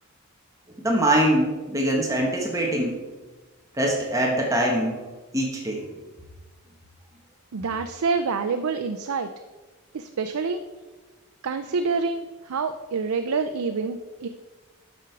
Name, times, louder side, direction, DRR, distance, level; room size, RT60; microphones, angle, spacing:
voice 1, 0.8-3.0 3.8-5.0 5.3-5.8, right 1 dB, 15° right, -1 dB, 1.3 m, -23 dB
voice 2, 7.5-9.3 9.9-10.6 11.4-14.3, right 4 dB, 80° right, 8 dB, 0.5 m, -27 dB
10.5 x 6.2 x 4.6 m, 1.2 s
head